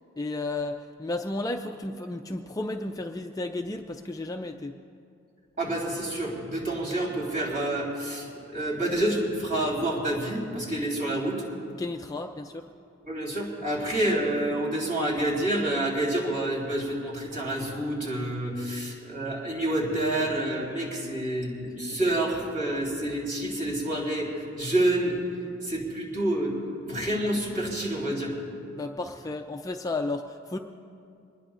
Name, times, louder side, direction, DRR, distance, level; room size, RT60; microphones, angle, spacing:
voice 1, 0.2-4.7 11.8-12.6 18.7-18.8 28.7-30.6, left 2 dB, 15° left, 4 dB, 0.4 m, -33 dB
voice 2, 5.6-11.4 13.0-25.2 25.6-26.6 26.8-28.3, right 1 dB, 40° right, -3 dB, 3.6 m, -28 dB
24.5 x 20.0 x 2.5 m, 2.5 s
head